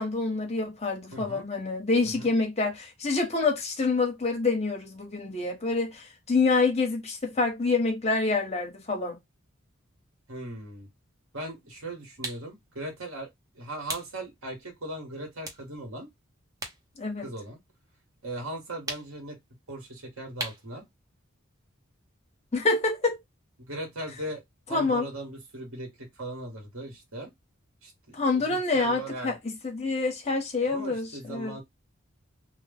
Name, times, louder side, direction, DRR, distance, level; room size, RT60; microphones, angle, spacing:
voice 1, 0.0-9.2 17.0-17.3 22.5-23.2 24.7-25.1 28.1-31.6, left 3 dB, 30° left, 1.2 m, -27 dB
voice 2, 1.1-1.4 2.2-2.3 10.3-10.9 11.3-13.3 13.5-16.1 17.2-17.6 18.2-19.4 19.7-20.9 23.7-24.4 24.7-27.3 27.8-29.4 30.7-31.6, right 1 dB, 90° right, 1.6 m, -38 dB
sound 1, 12.2-12.5 13.9-14.2 14.6-14.8 15.4-16.8 17.1-18.2 18.9-19.3 20.4-20.7, right 2 dB, 15° right, 0.8 m, -37 dB
3.1 x 2.2 x 3.4 m
head